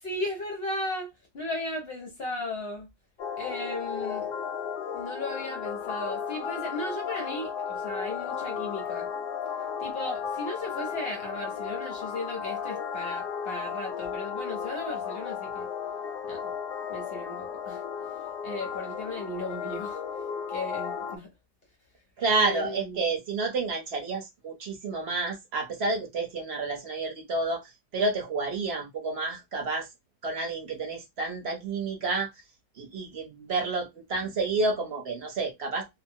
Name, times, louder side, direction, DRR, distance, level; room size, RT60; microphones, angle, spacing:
voice 1, 0.0-2.9 3.4-4.3 4.9-9.1 9.8-15.7 16.2-16.5 16.9-20.0 20.5-21.3 22.3-23.0, left 2 dB, 50° left, 0.8 m, -36 dB
sound 1, 3.2-21.2, left 7 dB, 80° left, 1.3 m, -34 dB
voice 2, 22.2-29.9 30.2-32.3 32.8-35.9, right 3 dB, 50° right, 0.8 m, -30 dB
3.0 x 2.0 x 2.7 m
omnidirectional pair, 1.8 m